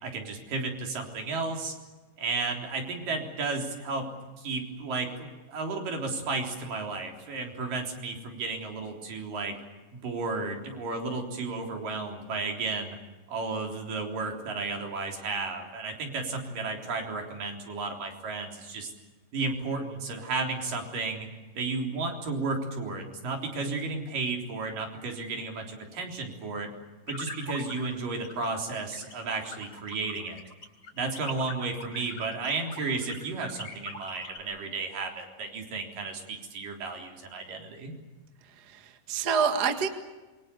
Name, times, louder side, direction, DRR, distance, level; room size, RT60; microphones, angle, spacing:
voice 1, 0.0-1.7 2.2-4.1 4.4-9.5 9.9-13.0 13.3-18.9 19.3-21.3 21.6-26.7 27.1-30.4 30.9-37.9, right 3 dB, 70° right, 2 dB, 5.3 m, -33 dB
sound 1, 27.1-27.9 28.2-28.5 28.7-34.4, left 1 dB, 20° left, 4.7 m, -41 dB
voice 2, 38.4-39.9, right 6 dB, 35° right, 6 dB, 1.8 m, -28 dB
27.5 x 24.0 x 7.0 m, 1.2 s
omnidirectional pair, 3.9 m